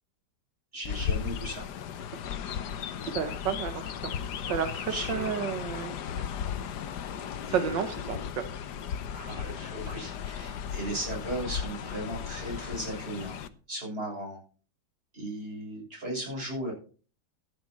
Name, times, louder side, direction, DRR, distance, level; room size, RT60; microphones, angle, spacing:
voice 1, 0.7-1.6 4.4-4.6 4.9-5.3 6.1-6.2 7.5-7.9 9.1-13.4 13.7-14.4 15.1-16.7, right 1 dB, 30° right, -2 dB, 8.0 m, -36 dB
Chirp tweet, 0.8-13.5, left 8 dB, 70° left, 1.5 m, -36 dB
voice 2, 3.0-4.1 4.5-6.0 7.5-8.5, right 7 dB, 90° right, 9 dB, 1.8 m, -31 dB
13.5 x 7.1 x 6.2 m, 0.39 s
omnidirectional pair, 1.9 m